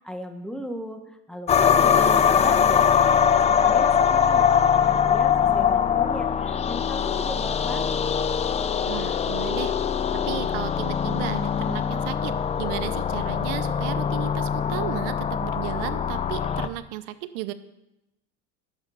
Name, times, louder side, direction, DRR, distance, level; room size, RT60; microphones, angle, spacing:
voice 1, 0.0-3.0 3.5-8.0, equal, ahead, 5 dB, 1.0 m, -37 dB
sound 1, 1.5-16.7, left 7 dB, 20° left, 0.4 m, -22 dB
voice 2, 8.9-9.7 10.3-17.5, right 14 dB, 70° right, 14 dB, 0.7 m, -34 dB
10.5 x 7.4 x 5.5 m, 0.92 s
supercardioid pair, 115°, 37 cm